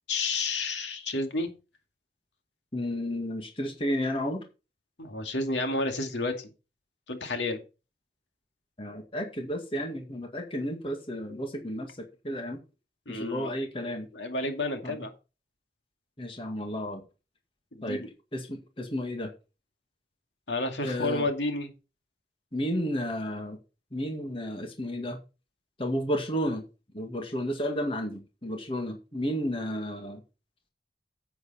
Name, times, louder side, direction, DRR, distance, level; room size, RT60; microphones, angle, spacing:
voice 1, 0.1-1.5 5.0-6.5 7.1-7.6 13.1-13.5 14.1-15.1 17.7-18.1 20.5-21.7, left 2 dB, 90° left, 5 dB, 2.3 m, -30 dB
voice 2, 2.7-4.4 8.8-12.6 13.1-14.1 14.8-15.0 16.2-17.0 17.8-18.0 18.3-19.3 20.8-21.3 22.5-23.6 23.9-25.2 25.8-26.7 26.9-30.2, equal, 30° left, 4 dB, 2.0 m, -32 dB
10.0 x 8.1 x 4.4 m, 0.30 s
head